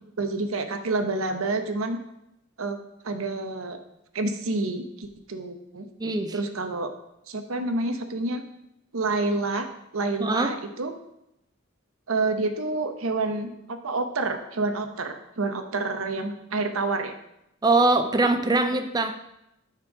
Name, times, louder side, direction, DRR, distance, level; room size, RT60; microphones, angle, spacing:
voice 1, 0.2-2.0 2.6-2.8 3.0-3.8 4.1-5.9 6.3-6.9 7.3-8.4 8.9-9.7 9.9-10.9 12.1-17.1, right 3 dB, 85° right, 7 dB, 0.9 m, -28 dB
voice 2, 6.0-6.4 10.2-10.5 17.6-19.1, right 2 dB, 20° right, 7 dB, 0.5 m, -22 dB
12.0 x 4.6 x 4.9 m, 0.84 s
head